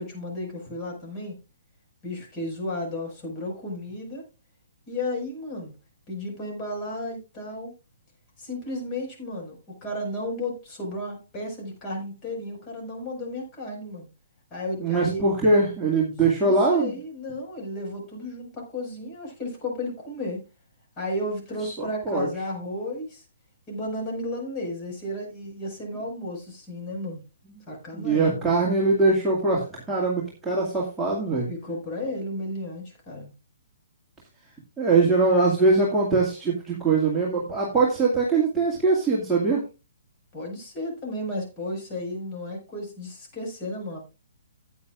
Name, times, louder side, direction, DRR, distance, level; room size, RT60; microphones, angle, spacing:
voice 1, 0.0-1.4 2.0-4.3 4.9-5.7 6.1-7.7 8.4-14.1 14.5-15.2 16.4-20.4 21.0-23.2 23.7-27.2 27.7-28.5 31.5-33.3 40.3-44.0, left 1 dB, 20° left, 0 dB, 5.5 m, -33 dB
voice 2, 14.8-16.9 21.6-22.3 27.9-31.5 34.8-39.6, right 3 dB, 5° right, -6 dB, 2.2 m, -22 dB
15.0 x 9.3 x 2.5 m, 0.30 s
figure-of-eight pair, 125°, 0 cm